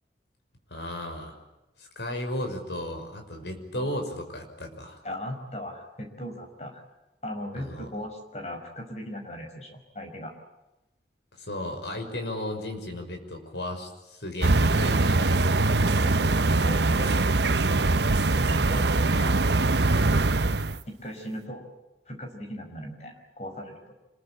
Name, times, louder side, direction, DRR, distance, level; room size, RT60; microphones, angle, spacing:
voice 1, 0.7-1.3 1.8-5.0 7.5-7.9 11.4-15.5, left 1 dB, 80° left, 5 dB, 6.0 m, -35 dB
voice 2, 5.0-6.8 7.2-10.3 15.8-17.2 18.2-19.6 20.9-21.7 22.1-23.8, equal, 40° left, 4 dB, 5.4 m, -38 dB
sound 1, 14.4-20.8, right 2 dB, 80° right, 1.0 m, -22 dB
27.0 x 22.0 x 8.7 m, 0.99 s
head